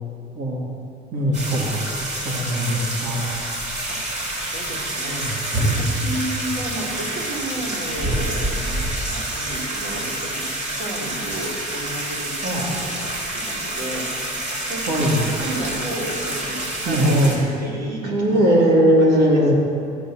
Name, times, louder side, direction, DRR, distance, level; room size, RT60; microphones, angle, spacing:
voice 1, 0.4-0.7 1.1-1.8 2.2-3.3 12.4-12.6 14.9-15.2 16.8-17.4 18.0-19.5, equal, 70° right, -5 dB, 2.4 m, -19 dB
sound 1, 1.3-17.4, right 1 dB, 45° right, 4.0 m, -27 dB
voice 2, 4.5-8.8 9.1-14.3 14.7-18.7 19.0-19.5, right 1 dB, 90° right, -3 dB, 3.5 m, -33 dB
13.5 x 9.0 x 7.5 m, 2.5 s
cardioid pair, 110°, 17 cm